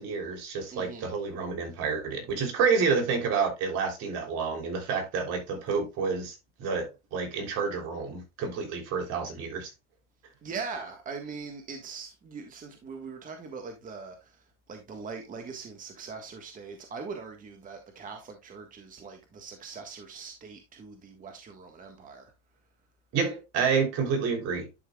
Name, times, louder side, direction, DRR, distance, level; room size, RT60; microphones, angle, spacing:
voice 1, 0.0-9.7 23.1-24.7, right 5 dB, 45° right, 3.4 m, -29 dB
voice 2, 0.7-1.1 10.4-22.3, right 5 dB, 25° right, 1.5 m, -41 dB
11.0 x 5.6 x 2.3 m
supercardioid pair, 120°, 34 cm